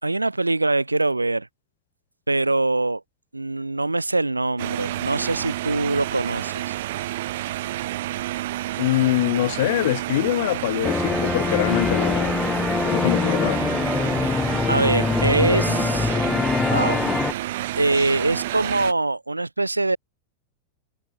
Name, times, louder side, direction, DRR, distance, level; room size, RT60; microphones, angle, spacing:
voice 1, 0.0-1.5 2.3-3.0 3.3-6.8 14.7-16.1 16.7-17.0 17.8-20.0, right 2 dB, 85° right, 0.9 m, -23 dB
sound 1, 4.6-18.9, right 15 dB, 55° right, 0.8 m, -30 dB
voice 2, 8.8-12.4 12.9-13.6, left 16 dB, 55° left, 0.6 m, -23 dB
sound 2, 10.8-17.3, left 4 dB, 10° left, 0.4 m, -23 dB
figure-of-eight pair, 90°, 0 cm